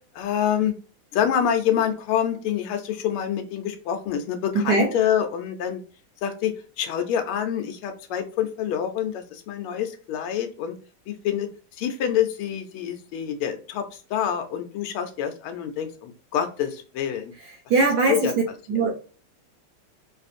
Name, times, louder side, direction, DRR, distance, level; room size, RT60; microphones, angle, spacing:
voice 1, 0.1-0.7 1.1-5.8 6.2-6.5 6.8-10.7 11.1-11.5 11.8-13.8 14.1-17.3 18.1-18.4 18.7-18.8, left 9 dB, 90° left, 1.5 m, -26 dB
voice 2, 17.7-18.3 18.7-19.0, right 3 dB, 65° right, 1.0 m, -20 dB
4.7 x 2.5 x 2.5 m
omnidirectional pair, 2.3 m